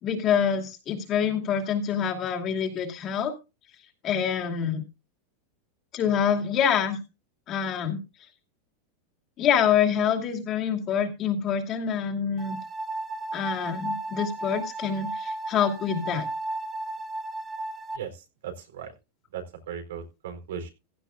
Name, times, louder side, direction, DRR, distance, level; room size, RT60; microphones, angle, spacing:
voice 1, 0.0-3.3 4.0-4.8 5.9-7.0 7.5-8.0 9.4-12.6 13.3-16.3, left 8 dB, 35° left, 3 dB, 2.5 m, -26 dB
sound 1, 12.4-18.0, right 2 dB, 10° right, 0.9 m, -34 dB
voice 2, 17.9-18.9 19.3-20.7, right 7 dB, 85° right, 6 dB, 4.3 m, -37 dB
16.0 x 11.5 x 2.5 m, 0.28 s
supercardioid pair, 145°, 0 cm